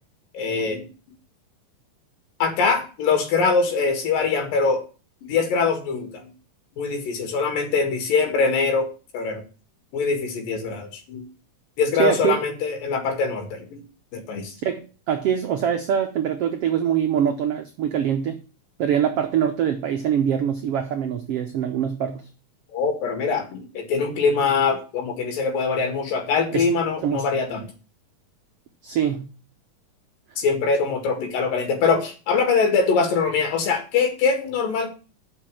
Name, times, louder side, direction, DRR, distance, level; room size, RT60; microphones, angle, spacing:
voice 1, 0.3-0.9 2.4-4.8 5.3-6.3 6.8-8.9 9.1-9.4 9.9-11.2 11.8-13.8 14.1-14.5 22.7-27.7 30.4-34.9, left 5 dB, 85° left, 5 dB, 3.6 m, -23 dB
voice 2, 12.0-12.4 14.6-18.4 18.8-22.2 26.5-26.7 27.0-27.3 28.8-29.3, right 9 dB, 80° right, 5 dB, 1.3 m, -23 dB
6.7 x 6.1 x 7.5 m, 0.34 s
omnidirectional pair, 3.9 m